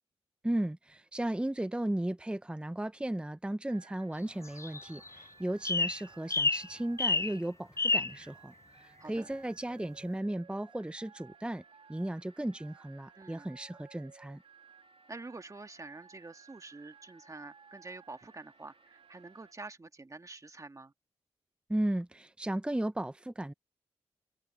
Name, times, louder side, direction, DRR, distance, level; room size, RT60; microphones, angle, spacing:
voice 1, 0.4-11.6 11.9-14.4 21.7-23.5, right 1 dB, 10° right, 0.8 m, -35 dB
sound 1, 3.7-19.5, right 6 dB, 65° right, 3.1 m, -58 dB
sound 2, 4.4-5.2 5.6-6.0 6.3-6.7 7.0-7.3 7.8-8.1, left 3 dB, 25° left, 0.5 m, -29 dB
voice 2, 13.1-13.5 15.1-20.9, right 3 dB, 30° right, 2.0 m, -47 dB
open air
cardioid pair, 50°, 11 cm